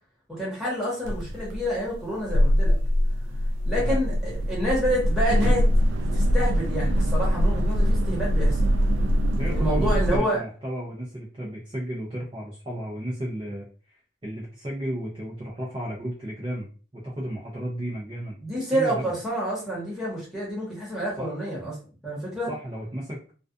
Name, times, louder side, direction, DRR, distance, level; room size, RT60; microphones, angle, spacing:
voice 1, 0.3-2.8 3.6-5.6 6.0-8.6 9.5-10.4 18.4-21.8 22.0-22.5, equal, 5° right, -6 dB, 1.0 m, -28 dB
sound 1, 1.0-10.2, equal, 85° right, 0.3 m, -23 dB
voice 2, 9.3-18.4 18.7-19.1 21.2-21.3 22.5-23.2, equal, 25° right, -6 dB, 0.5 m, -34 dB
2.4 x 2.3 x 2.4 m, 0.37 s
head